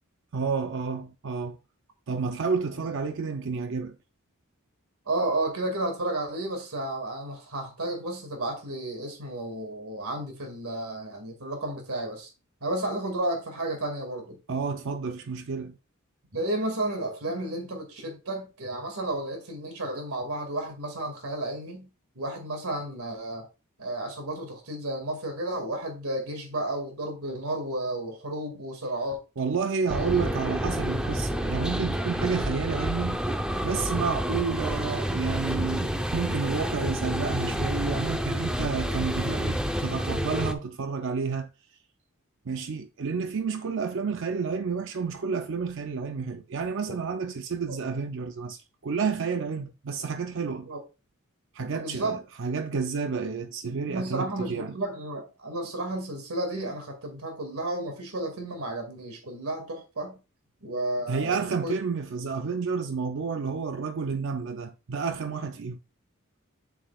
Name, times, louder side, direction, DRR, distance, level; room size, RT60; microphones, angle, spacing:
voice 1, 0.3-1.6 2.1-4.0 14.5-15.8 29.4-33.2 33.6-41.5 42.5-50.7 51.5-54.8 61.1-65.8, right 5 dB, 60° right, 0.5 m, -30 dB
voice 2, 5.1-12.3 12.6-14.4 16.3-21.9 22.2-23.5 23.8-29.2 29.9-30.2 47.7-47.8 50.7-50.8 51.7-52.2 53.9-60.2 60.6-61.7, right 1 dB, 90° right, 2.1 m, -32 dB
sound 1, 29.9-40.5, equal, 5° right, 0.6 m, -29 dB
8.4 x 7.4 x 2.3 m
head